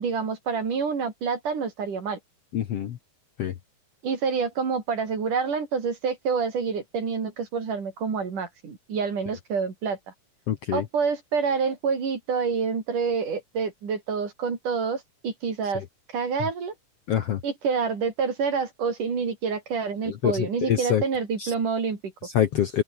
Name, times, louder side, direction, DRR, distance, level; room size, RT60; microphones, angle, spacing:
voice 1, 0.0-2.2 4.0-10.0 10.7-15.8 16.1-16.7 17.4-22.1, right 5 dB, 65° right, 5.7 m, -27 dB
voice 2, 2.5-3.0 3.4-3.5 10.5-10.8 17.1-17.4 20.1-21.0 21.4-21.5 22.2-22.8, left 10 dB, 60° left, 1.7 m, -25 dB
omnidirectional pair, 4.0 m